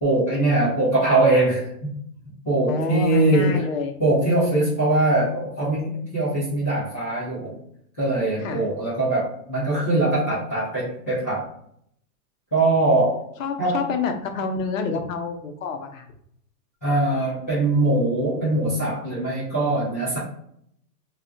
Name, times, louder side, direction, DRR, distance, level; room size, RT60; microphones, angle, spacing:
voice 1, 0.0-1.9 2.4-3.6 4.0-7.5 8.0-11.4 12.5-13.2 13.6-13.9 16.8-20.2, right 2 dB, 10° left, -14 dB, 0.3 m, -22 dB
voice 2, 2.7-3.9 8.4-8.7 13.4-16.1, left 4 dB, 55° left, 5 dB, 0.7 m, -28 dB
2.4 x 2.1 x 3.8 m, 0.69 s
hypercardioid pair, 150°, 48 cm